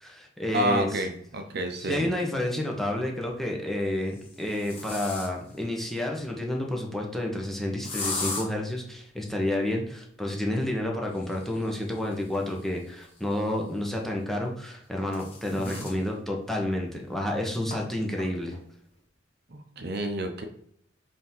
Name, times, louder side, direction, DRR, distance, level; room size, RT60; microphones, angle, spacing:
voice 1, 0.0-1.0 1.8-18.6, left 1 dB, ahead, 0 dB, 1.0 m, -30 dB
voice 2, 0.5-2.1 15.6-15.9 19.5-20.5, right 1 dB, 55° right, 6 dB, 0.8 m, -30 dB
sound 1, 1.5-1.6 3.0-3.4 4.0-5.6 7.8-8.4 11.0-13.7 14.7-16.0 16.5-16.6 16.9-17.0 17.7-17.8 18.2-18.6, left 3 dB, 30° left, 1.9 m, -38 dB
5.1 x 3.6 x 5.6 m, 0.67 s
head